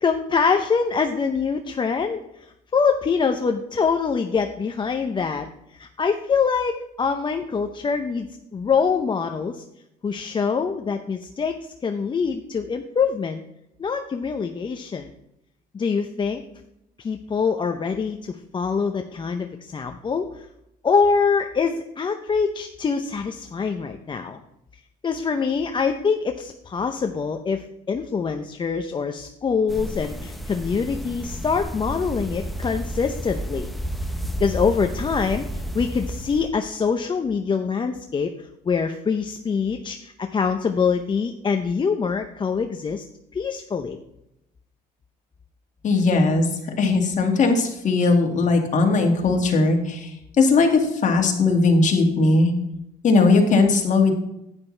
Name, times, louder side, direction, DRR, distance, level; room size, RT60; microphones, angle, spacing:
voice 1, 0.0-8.3 8.5-9.6 10.0-13.4 13.8-15.1 15.7-16.4 17.0-20.5 20.8-24.4 25.0-33.7 34.4-43.1 43.3-44.0, left 5 dB, 30° left, 5 dB, 0.6 m, -24 dB
sound 1, 29.7-36.5, equal, ahead, 0.8 m, -31 dB
voice 2, 45.8-46.5 46.8-52.5 53.0-54.2, left 3 dB, 45° left, 3 dB, 2.0 m, -19 dB
10.5 x 9.1 x 3.3 m, 0.84 s
cardioid pair, 110°, 17 cm